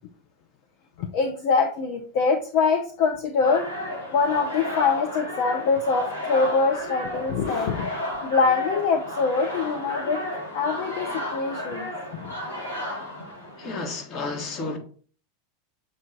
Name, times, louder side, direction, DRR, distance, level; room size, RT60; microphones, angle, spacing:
voice 1, 1.0-3.7 4.1-7.9 8.2-10.2 10.5-11.9 12.2-12.3, left 4 dB, 55° left, 0.7 m, -24 dB
sound 1, 3.4-13.9, left 1 dB, 90° left, 1.6 m, -33 dB
voice 2, 13.6-14.8, left 3 dB, 40° left, 1.6 m, -31 dB
7.3 x 3.2 x 3.9 m
figure-of-eight pair, 85°, 0 cm